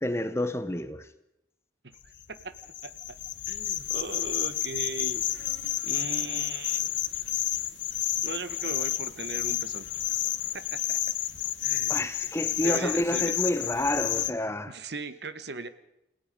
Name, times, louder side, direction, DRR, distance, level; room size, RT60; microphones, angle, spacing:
voice 1, 0.0-1.1 11.9-14.7, left 1 dB, 15° left, 0.8 m, -29 dB
sound 1, 2.0-14.3, left 12 dB, 80° left, 0.9 m, -30 dB
voice 2, 2.3-2.9 3.5-5.2 5.8-6.9 8.2-9.9 10.5-11.0 11.6-12.0 12.6-13.4 14.7-15.7, right 3 dB, 65° right, 1.1 m, -38 dB
29.0 x 17.0 x 5.3 m
head